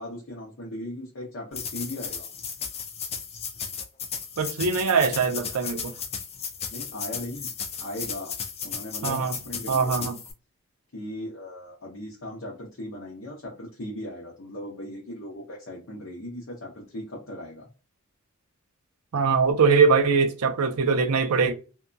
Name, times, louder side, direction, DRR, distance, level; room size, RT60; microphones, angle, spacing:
voice 1, 0.0-2.3 6.7-7.5 7.8-8.3 8.6-10.1 10.9-17.7, left 1 dB, 60° left, 0.8 m, -38 dB
sound 1, 1.5-10.3, left 6 dB, 30° left, 0.4 m, -35 dB
voice 2, 4.4-5.9 9.0-9.4 9.7-10.1 19.1-21.5, right 5 dB, 90° right, 0.5 m, -22 dB
2.7 x 2.2 x 2.4 m
head